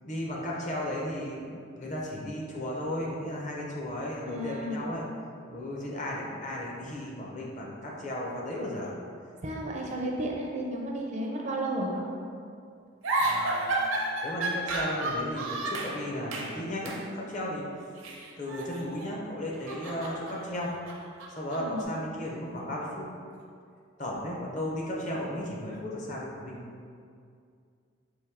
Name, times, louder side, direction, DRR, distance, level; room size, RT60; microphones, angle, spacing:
voice 1, 0.0-5.0 5.5-9.0 13.2-13.8 14.2-17.0 17.2-17.7 18.4-20.7 21.3-23.1 24.0-26.7, left 1 dB, 35° left, -3 dB, 0.6 m, -35 dB
voice 2, 4.3-4.8 9.4-12.1 21.6-21.9, right 1 dB, 35° right, -1 dB, 0.4 m, -33 dB
sound 1, 13.0-16.0 16.3-16.6 16.8-17.0 18.0-19.1 19.4-21.8, right 2 dB, 75° right, 0.6 m, -32 dB
4.6 x 2.6 x 3.4 m, 2.3 s
head